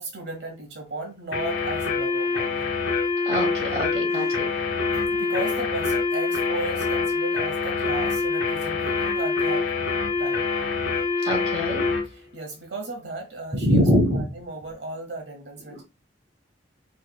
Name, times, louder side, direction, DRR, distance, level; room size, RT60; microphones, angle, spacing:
voice 1, 0.0-2.7 4.9-10.5 12.1-13.8 14.1-15.8, right 2 dB, 60° right, 1.1 m, -35 dB
sound 1, 1.3-12.1, left 4 dB, 75° left, 1.2 m, -25 dB
voice 2, 3.2-4.5 11.2-11.8 13.5-14.3 15.7-15.8, equal, 30° right, 1.2 m, -24 dB
4.9 x 3.1 x 2.3 m
head